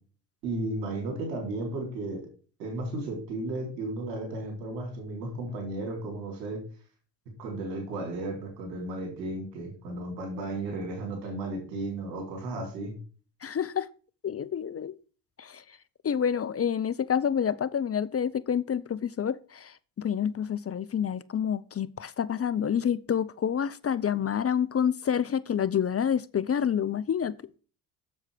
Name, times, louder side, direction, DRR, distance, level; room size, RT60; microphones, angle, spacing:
voice 1, 0.4-2.3 2.6-6.6 7.4-13.0, right 2 dB, 85° right, 4.0 m, -34 dB
voice 2, 13.4-13.9 14.2-15.0 15.4-15.6 16.0-27.4, left 8 dB, 30° left, 0.7 m, -28 dB
7.7 x 7.4 x 5.1 m
hypercardioid pair, 60°, 48 cm